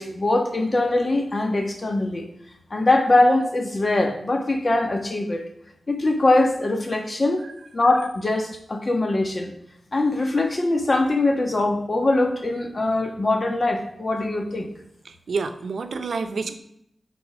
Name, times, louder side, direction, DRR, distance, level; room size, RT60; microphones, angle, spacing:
voice 1, 0.0-2.3 2.7-5.4 5.9-7.4 7.7-9.5 9.9-14.7, left 2 dB, 35° left, 3 dB, 1.4 m, -22 dB
voice 2, 15.0-16.6, right 4 dB, 80° right, 8 dB, 0.7 m, -28 dB
8.5 x 4.2 x 6.2 m, 0.76 s
wide cardioid pair, 95°, 0 cm